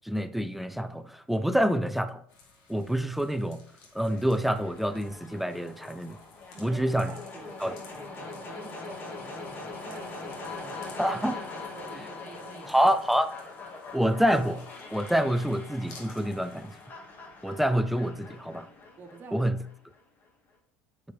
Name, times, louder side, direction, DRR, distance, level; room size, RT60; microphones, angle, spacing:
voice 1, 0.0-2.2 2.7-3.6 3.9-6.2 6.6-7.1 7.6-7.7 11.0-11.4 12.7-13.3 13.9-14.6 14.9-16.7 17.4-18.7 19.3-19.6, equal, ahead, 11 dB, 0.4 m, -27 dB
sound 1, 2.3-16.9, left 4 dB, 75° left, 2.3 m, -56 dB
sound 2, 4.0-20.0, left 3 dB, 35° left, 1.8 m, -42 dB
voice 2, 6.5-11.2 11.5-13.0 19.0-19.4, right 4 dB, 35° right, 3 dB, 1.2 m, -48 dB
9.0 x 5.1 x 3.4 m, 0.67 s
supercardioid pair, 105°, 6 cm